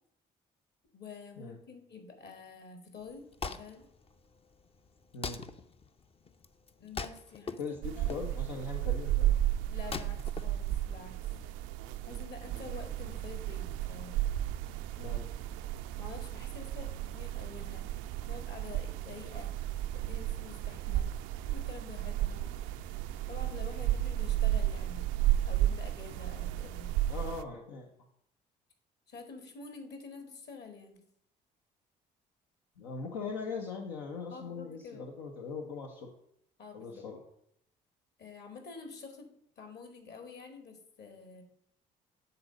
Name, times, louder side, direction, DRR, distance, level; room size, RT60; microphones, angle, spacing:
voice 1, 0.9-3.9 6.8-7.6 8.0-8.3 9.7-11.3 12.1-14.2 15.9-17.9 18.3-19.5 19.9-21.1 21.5-22.4 23.3-25.1 25.5-26.9 29.1-31.1 34.3-35.1 36.6-37.1 38.2-39.3 39.6-41.4, left 4 dB, 55° left, 5 dB, 1.9 m, -48 dB
Wood, 3.0-11.3, left 4 dB, 25° left, 0.6 m, -44 dB
voice 2, 7.6-9.3 15.0-15.3 23.8-23.9 27.1-27.9 32.8-36.1 36.7-37.2, left 4 dB, 75° left, 0 dB, 0.9 m, -40 dB
sound 1, 7.8-27.4, right 13 dB, 70° right, 0.4 m, -33 dB
7.9 x 3.9 x 6.2 m, 0.74 s
hypercardioid pair, 50°, 21 cm